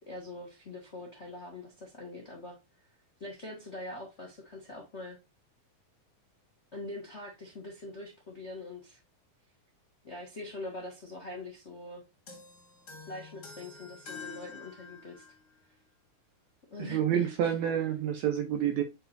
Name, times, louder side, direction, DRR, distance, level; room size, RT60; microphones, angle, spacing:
voice 1, 0.0-2.6 3.2-5.2 6.7-9.0 10.0-12.0 13.1-15.2 16.7-17.5, left 2 dB, 65° left, 0.6 m, -43 dB
sound 1, 12.3-15.5, left 5 dB, 40° left, 1.6 m, -48 dB
voice 2, 16.8-18.8, right 9 dB, 80° right, 1.6 m, -28 dB
8.9 x 4.4 x 2.6 m
omnidirectional pair, 4.0 m